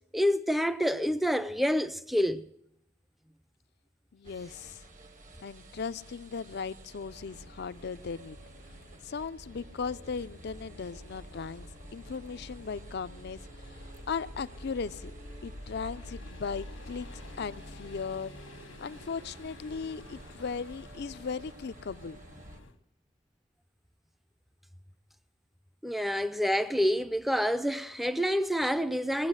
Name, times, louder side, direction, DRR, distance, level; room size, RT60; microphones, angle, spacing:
voice 1, 0.1-2.5 25.8-29.3, equal, ahead, 0.5 m, -28 dB
voice 2, 4.1-4.8 5.4-8.4 9.0-15.1 15.4-18.3 18.8-22.2, left 5 dB, 55° left, 0.5 m, -37 dB
sound 1, 4.2-22.6, right 2 dB, 40° right, 1.1 m, -52 dB
sound 2, 7.0-22.8, left 1 dB, 90° left, 1.5 m, -49 dB
20.0 x 8.1 x 6.3 m
head